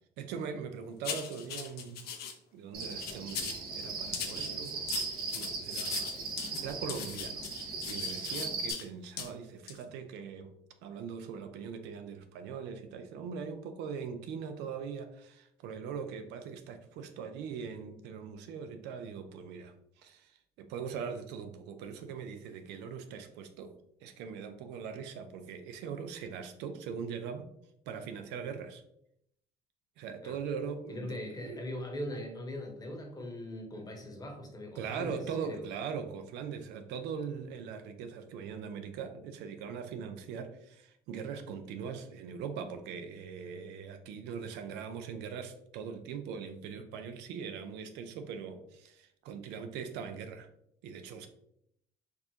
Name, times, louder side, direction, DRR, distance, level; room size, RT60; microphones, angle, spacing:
voice 1, 0.2-2.1 2.5-4.9 5.3-6.1 6.6-10.5 10.8-23.7 24.0-27.5 27.9-28.8 30.0-31.7 34.8-50.5 50.8-51.3, right 6 dB, 90° right, 7 dB, 0.5 m, -41 dB
sound 1, 1.0-2.3 2.8-3.6 4.1-8.8 9.2-9.3 9.7-9.8, left 7 dB, 70° left, 0.6 m, -39 dB
Cricket, 2.7-8.7, right 4 dB, 60° right, 1.0 m, -38 dB
voice 2, 30.9-35.2 35.4-35.6, left 1 dB, 20° left, 2 dB, 1.0 m, -40 dB
4.6 x 2.4 x 2.8 m, 0.74 s
cardioid pair, 110°, 17 cm